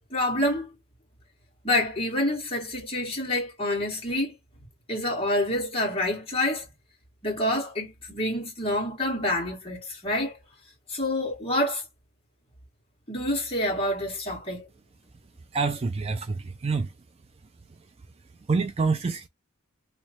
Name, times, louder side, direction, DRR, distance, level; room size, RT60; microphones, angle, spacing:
voice 1, 0.1-0.7 1.6-4.3 4.9-6.7 7.2-10.4 10.9-11.8 13.1-14.7, left 1 dB, 25° left, 1.8 m, -27 dB
voice 2, 15.5-16.9 18.5-19.3, right 4 dB, 30° right, 0.4 m, -26 dB
3.0 x 2.3 x 4.2 m
head